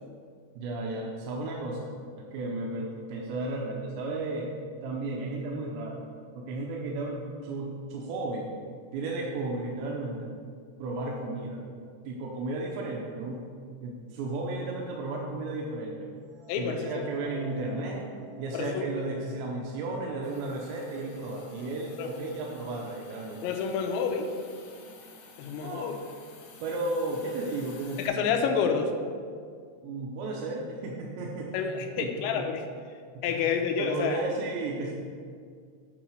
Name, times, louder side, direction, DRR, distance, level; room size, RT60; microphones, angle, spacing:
voice 1, 0.6-4.5 4.8-6.0 6.3-8.5 8.9-10.3 10.8-11.6 12.1-13.5 13.8-16.1 16.6-18.1 18.4-23.4 25.6-25.9 26.6-28.3 29.8-31.5 32.0-32.4 33.1-33.5 33.8-34.9, right 2 dB, 90° right, -1 dB, 3.0 m, -34 dB
sound 1, 16.3-22.5, right 1 dB, 55° right, 2.6 m, -47 dB
voice 2, 16.5-17.0 18.5-18.9 22.0-22.1 23.4-24.3 25.4-25.9 28.0-28.9 31.5-32.6 33.2-34.2, left 6 dB, 90° left, 4 dB, 3.0 m, -28 dB
Hiss, 20.2-28.1, left 4 dB, 70° left, 2.5 m, -52 dB
9.3 x 4.0 x 6.2 m, 2.1 s
omnidirectional pair, 5.1 m